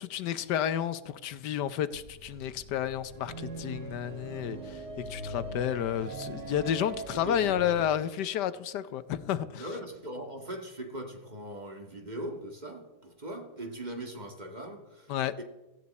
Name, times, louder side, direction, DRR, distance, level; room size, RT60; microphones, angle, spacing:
voice 1, 0.0-4.8 5.1-9.7 15.1-15.3, left 10 dB, 85° left, 1.4 m, -31 dB
sound 1, 1.9-7.9, right 2 dB, 45° right, 1.5 m, -41 dB
voice 2, 7.1-7.6 9.5-15.1 15.4-15.5, right 1 dB, 25° right, 1.9 m, -40 dB
16.5 x 15.0 x 4.2 m
omnidirectional pair, 1.8 m